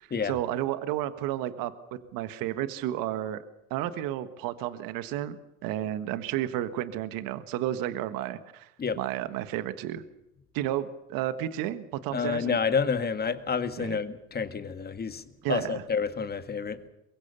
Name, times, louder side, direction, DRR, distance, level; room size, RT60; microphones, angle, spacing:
voice 1, 0.0-1.7 2.1-3.4 3.7-10.0 10.5-12.6 13.8-14.0 15.4-15.8, right 12 dB, 55° right, 13 dB, 1.5 m, -32 dB
voice 2, 12.1-15.2 15.5-16.9, left 5 dB, 25° left, 10 dB, 2.0 m, -29 dB
23.5 x 22.0 x 6.9 m, 0.89 s
hypercardioid pair, 95°, 39 cm